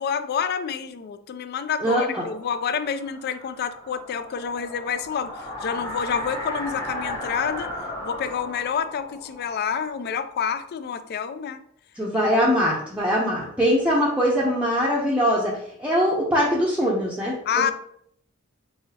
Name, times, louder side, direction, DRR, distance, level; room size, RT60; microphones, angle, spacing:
voice 1, 0.0-7.7 8.0-11.6 12.2-12.3 17.5-17.7, left 7 dB, 50° left, 12 dB, 0.3 m, -28 dB
voice 2, 1.8-2.3 12.0-15.5 15.8-17.7, equal, 5° right, -6 dB, 0.6 m, -22 dB
sound 1, 2.1-10.9, left 1 dB, 15° left, 0.9 m, -36 dB
3.9 x 3.9 x 2.8 m, 0.68 s
head